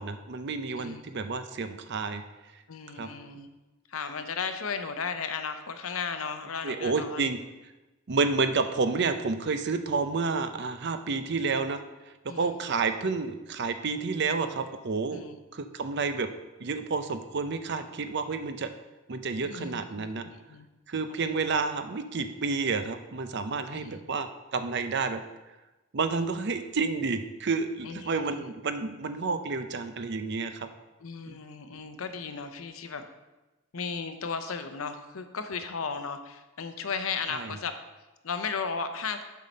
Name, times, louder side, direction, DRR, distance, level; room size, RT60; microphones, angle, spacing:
voice 1, 0.0-2.2 3.0-3.1 6.6-7.4 8.1-11.8 12.4-15.2 15.5-16.3 16.6-18.7 19.1-20.3 20.9-25.2 25.9-30.7 31.3-31.4 37.3-37.5, right 4 dB, 55° right, 9 dB, 0.6 m, -30 dB
voice 2, 2.7-3.5 3.9-7.3 12.3-12.5 15.1-15.4 19.4-20.7 21.2-21.4 23.7-23.9 27.8-28.5 31.0-33.0 33.7-37.7 38.2-39.2, left 5 dB, 85° left, 8 dB, 0.7 m, -35 dB
7.3 x 5.7 x 5.3 m, 1.1 s
head